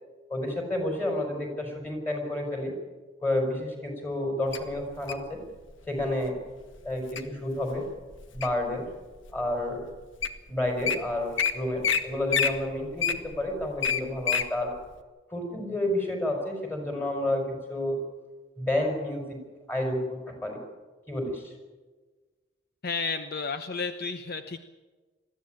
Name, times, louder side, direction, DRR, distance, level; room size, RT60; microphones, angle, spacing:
voice 1, 0.3-2.7 3.2-5.4 5.9-6.4 6.8-7.9 8.3-8.8 9.3-9.9 10.5-14.7 15.3-18.0 18.6-19.4 19.7-20.6 21.1-21.5, left 1 dB, 10° left, 2 dB, 5.0 m, -30 dB
Wild animals, 4.5-5.3 6.0-6.3 6.8-7.2 7.7-8.7 9.3-9.4 9.9-10.0 10.2-10.4 10.6-10.9 11.4-11.5 11.8-12.0 12.3-14.5 14.9-15.0, left 7 dB, 80° left, 1.5 m, -27 dB
voice 2, 22.8-24.6, left 4 dB, 50° left, 8 dB, 0.9 m, -32 dB
21.5 x 14.5 x 9.0 m, 1.3 s
head